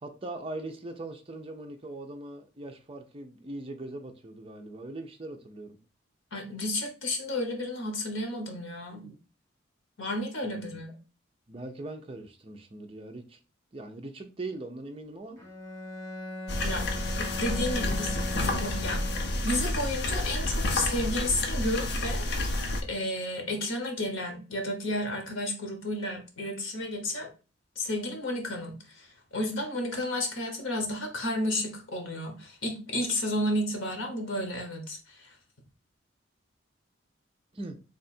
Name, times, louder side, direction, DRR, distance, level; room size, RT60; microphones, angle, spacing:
voice 1, 0.0-5.8 10.4-10.8 11.5-13.4 13.7-15.4 37.5-37.8, right 2 dB, 30° right, 0.5 m, -40 dB
voice 2, 6.3-9.1 10.0-10.9 16.6-16.9 17.2-19.0 19.4-22.3 22.9-27.3 27.8-35.3, left 1 dB, 80° left, 1.1 m, -32 dB
Bowed string instrument, 15.4-19.8, left 1 dB, 15° left, 1.0 m, -39 dB
sound 1, 16.5-22.8, left 1 dB, 55° left, 0.6 m, -30 dB
3.4 x 2.5 x 4.2 m
head